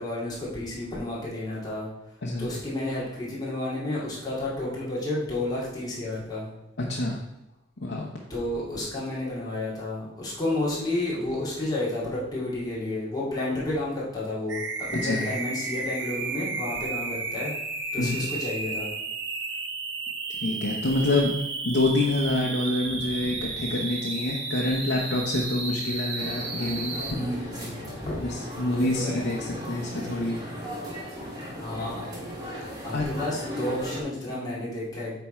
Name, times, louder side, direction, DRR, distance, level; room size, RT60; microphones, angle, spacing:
voice 1, 0.0-1.9 2.4-6.5 8.3-17.5 17.9-18.9 22.9-23.5 27.1-28.2 28.7-29.2 31.5-32.1 32.8-35.2, left 2 dB, 20° left, -7 dB, 2.2 m, -31 dB
voice 2, 6.8-7.2 7.8-8.1 14.9-15.3 18.0-18.2 20.3-21.3 21.6-27.2 28.2-30.4 32.9-33.1, left 2 dB, 75° left, -2 dB, 0.9 m, -27 dB
sound 1, 14.5-27.1, right 3 dB, 75° right, 0.9 m, -33 dB
sound 2, 26.2-34.0, equal, 20° right, 1.9 m, -37 dB
8.9 x 3.6 x 4.4 m, 0.88 s
head